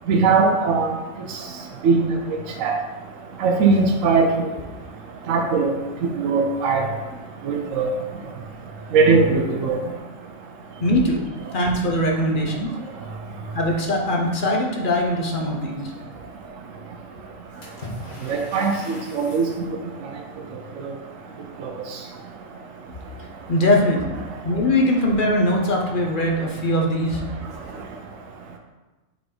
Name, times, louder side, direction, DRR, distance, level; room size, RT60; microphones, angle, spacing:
voice 1, 0.1-0.9 1.8-2.1 2.6-2.8 3.4-4.3 5.3-5.7 6.2-6.9 7.5-7.9 8.9-9.8 18.3-18.7 19.1-19.5, right 4 dB, 75° right, 3 dB, 1.1 m, -19 dB
voice 2, 10.8-11.2 11.5-12.7 13.5-15.9 23.5-24.2 24.4-27.2, left 1 dB, 45° left, 0 dB, 0.9 m, -21 dB
Water / Splash splatter, 17.6-19.7, left 1 dB, 65° left, 2.0 m, -39 dB
5.5 x 4.5 x 3.9 m, 1.1 s
omnidirectional pair, 1.4 m